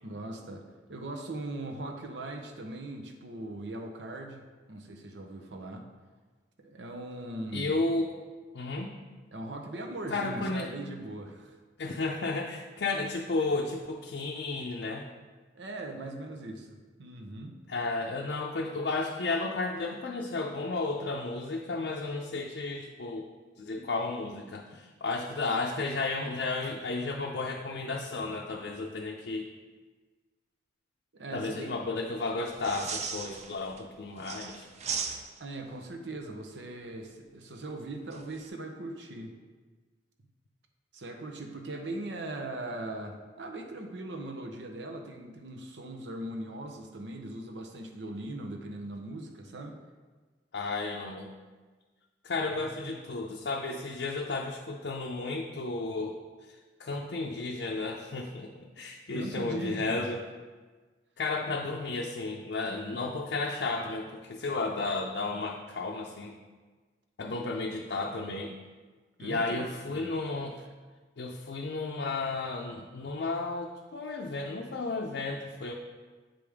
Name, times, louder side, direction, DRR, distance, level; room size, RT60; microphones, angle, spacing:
voice 1, 0.0-5.8 6.6-7.8 9.3-11.6 15.5-17.5 31.1-31.7 35.4-39.3 40.9-49.8 52.5-52.9 59.1-60.2 69.2-70.2, right 2 dB, 80° right, 4 dB, 0.8 m, -40 dB
voice 2, 7.5-8.1 8.5-8.9 10.1-10.7 11.8-15.0 17.7-23.3 23.6-29.5 31.3-34.7 50.5-51.3 52.2-56.2 56.8-60.2 61.2-66.3 67.2-68.6 69.2-70.6 71.2-75.7, left 3 dB, 70° left, 0 dB, 0.5 m, -33 dB
sound 1, 32.5-33.8 34.2-35.6 38.1-38.5, right 5 dB, 40° right, 0.4 m, -37 dB
7.6 x 5.0 x 3.5 m, 1.4 s
head